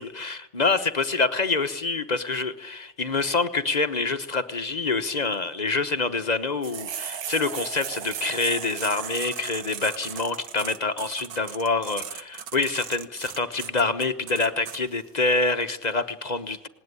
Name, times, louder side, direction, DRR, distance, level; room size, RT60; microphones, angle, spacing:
voice 1, 0.0-16.7, left 3 dB, 30° left, 9 dB, 0.9 m, -26 dB
sound 1, 6.6-14.8, right 9 dB, 70° right, 1.5 m, -36 dB
19.0 x 19.0 x 9.8 m, 0.91 s
omnidirectional pair, 1.8 m